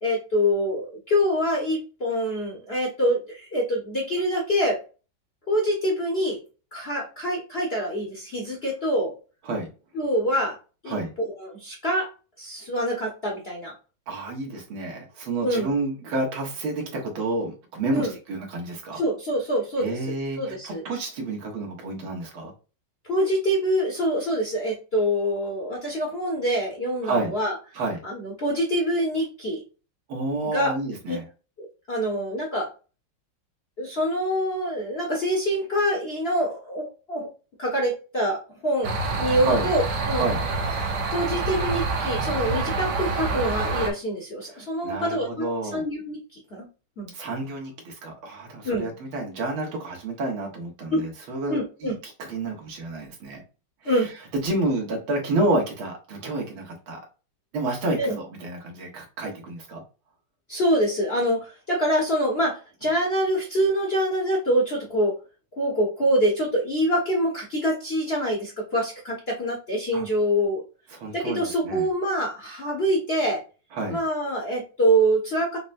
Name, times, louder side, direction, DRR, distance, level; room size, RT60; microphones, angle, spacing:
voice 1, 0.0-4.8 5.5-6.4 6.7-9.1 9.9-10.6 10.8-10.9 11.4-12.1 12.4-13.7 15.4-15.7 17.9-18.1 18.9-19.9 20.4-20.8 23.1-27.5 28.0-29.6 30.5-30.7 31.1-31.2 31.6-32.7 33.8-37.3 37.6-40.2 41.1-46.7 47.0-47.1 48.6-48.9 50.9-51.0 51.5-51.9 53.8-54.1 58.0-58.2 60.5-65.1 65.6-70.6 71.1-73.4 73.9-75.6, equal, 50° left, 0.7 m, -25 dB
voice 2, 14.1-19.0 19.8-22.5 27.0-27.3 27.7-28.0 30.1-31.3 39.4-39.7 40.2-40.4 44.5-45.8 47.1-53.4 53.8-57.0 57.5-59.8 69.9-70.1 70.9-71.9 73.7-74.0, right 2 dB, 85° right, 2.1 m, -29 dB
sound 1, 38.8-43.9, right 3 dB, 65° right, 1.4 m, -27 dB
5.9 x 2.2 x 2.5 m
omnidirectional pair, 2.2 m